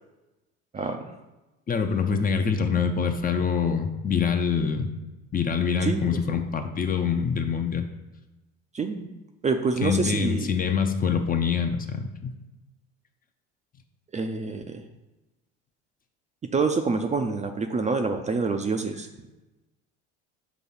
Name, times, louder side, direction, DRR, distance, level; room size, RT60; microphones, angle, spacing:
voice 1, 0.7-1.1 5.8-6.4 8.7-9.1 9.4-10.5 14.1-14.8 16.5-19.1, right 4 dB, 20° right, 5 dB, 0.5 m, -27 dB
voice 2, 1.7-4.9 5.3-7.9 9.8-12.4, left 6 dB, 25° left, 6 dB, 0.7 m, -25 dB
6.1 x 3.0 x 5.6 m, 1.0 s
hypercardioid pair, 80°, 33 cm